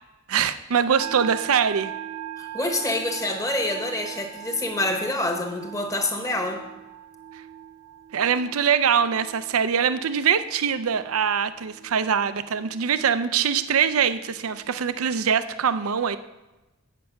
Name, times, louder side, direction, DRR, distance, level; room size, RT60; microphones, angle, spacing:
voice 1, 0.3-1.9 8.1-16.2, right 7 dB, 80° right, 12 dB, 0.5 m, -23 dB
sound 1, 1.0-14.9, right 11 dB, 65° right, 1.0 m, -41 dB
voice 2, 2.4-6.6, left 2 dB, 15° left, 4 dB, 1.2 m, -27 dB
8.9 x 7.5 x 5.8 m, 1.1 s
head